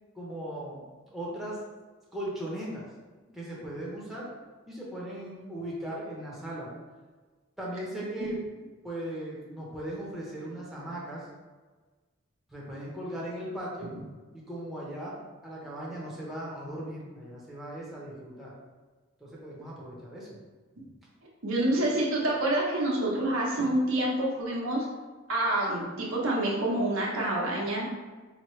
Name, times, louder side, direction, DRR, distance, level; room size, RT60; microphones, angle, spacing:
voice 1, 0.1-0.8 1.1-1.6 2.1-2.8 3.3-4.3 4.7-6.7 7.6-8.4 8.8-11.3 12.5-13.9 14.3-18.5 19.2-20.3, right 1 dB, ahead, -6 dB, 0.8 m, -38 dB
voice 2, 21.4-24.8 25.3-27.9, right 1 dB, 85° right, -4 dB, 1.0 m, -27 dB
4.2 x 2.9 x 3.1 m, 1.3 s
head